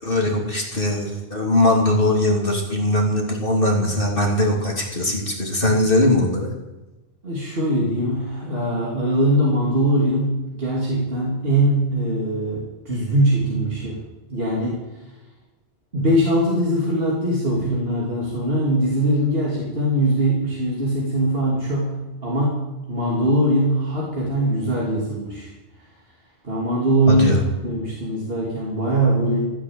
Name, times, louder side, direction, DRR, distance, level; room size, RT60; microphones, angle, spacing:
voice 1, 0.0-6.5 27.1-27.4, left 1 dB, 60° left, -1 dB, 3.4 m, -20 dB
voice 2, 7.2-14.0 14.3-14.8 15.9-25.5 26.4-27.3 27.6-29.5, right 1 dB, 65° right, -4 dB, 3.4 m, -21 dB
15.0 x 10.5 x 8.9 m, 1.1 s
omnidirectional pair, 1.1 m